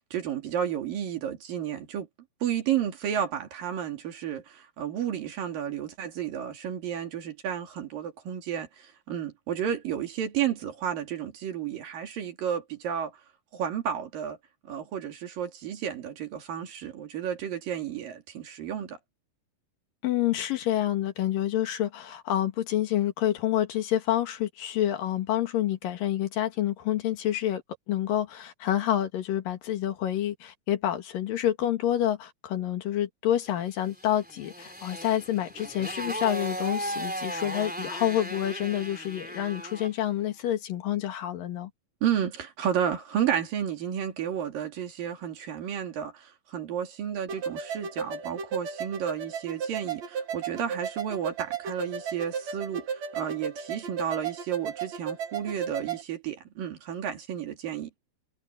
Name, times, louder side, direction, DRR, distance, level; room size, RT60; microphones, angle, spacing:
voice 1, 0.1-2.1 2.4-13.1 13.5-14.4 14.7-19.0 42.0-57.9, right 9 dB, 75° right, 4.2 m, -32 dB
voice 2, 20.0-27.6 27.9-41.7, left 12 dB, 75° left, 3.3 m, -28 dB
Motorcycle, 33.9-40.0, right 1 dB, 5° right, 3.5 m, -36 dB
sound 1, 47.3-56.0, right 6 dB, 55° right, 3.1 m, -34 dB
omnidirectional pair, 4.0 m